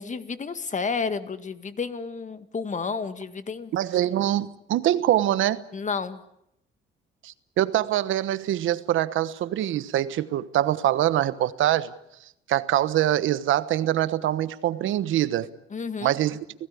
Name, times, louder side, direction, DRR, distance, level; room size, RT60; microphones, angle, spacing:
voice 1, 0.0-3.7 5.7-6.2 15.7-16.2, left 5 dB, 40° left, 1.9 m, -31 dB
voice 2, 3.7-5.6 7.2-11.9 12.5-15.5 16.0-16.4, right 12 dB, 80° right, 1.2 m, -24 dB
30.0 x 17.5 x 8.5 m
cardioid pair, 90°, 20 cm